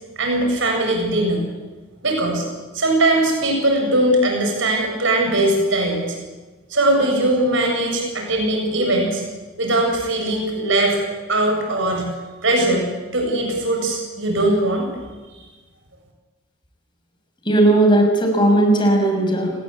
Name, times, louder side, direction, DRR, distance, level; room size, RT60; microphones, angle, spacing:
voice 1, 0.2-1.4 2.0-2.4 2.7-6.0 6.7-9.2 9.6-11.0 11.3-12.1 12.4-14.9, right 1 dB, 60° right, 2 dB, 7.9 m, -20 dB
voice 2, 17.5-19.5, right 1 dB, 25° left, 3 dB, 6.1 m, -16 dB
29.5 x 21.5 x 8.5 m, 1.3 s
head